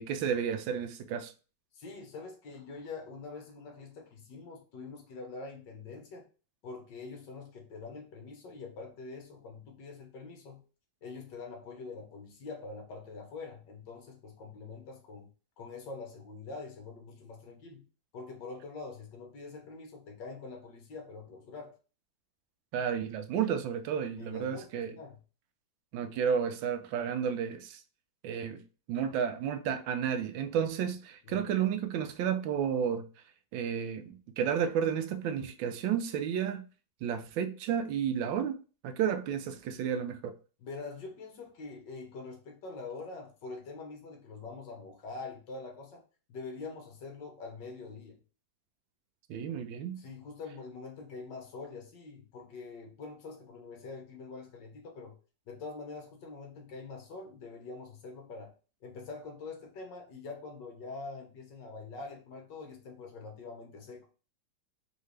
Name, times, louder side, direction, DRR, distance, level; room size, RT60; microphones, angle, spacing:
voice 1, 0.0-1.3 22.7-25.0 25.9-27.8 28.2-28.6 28.9-33.1 33.5-36.6 37.0-38.6 38.8-40.4 49.3-50.0, right 8 dB, 90° right, 1.4 m, -32 dB
voice 2, 1.7-6.3 6.6-10.6 11.0-15.3 15.6-17.8 18.1-21.7 24.2-25.2 31.2-31.4 40.6-46.0 46.3-48.2 50.0-55.1 55.5-58.5 58.8-64.1, left 4 dB, 70° left, 1.7 m, -44 dB
4.8 x 2.8 x 3.2 m
omnidirectional pair, 2.1 m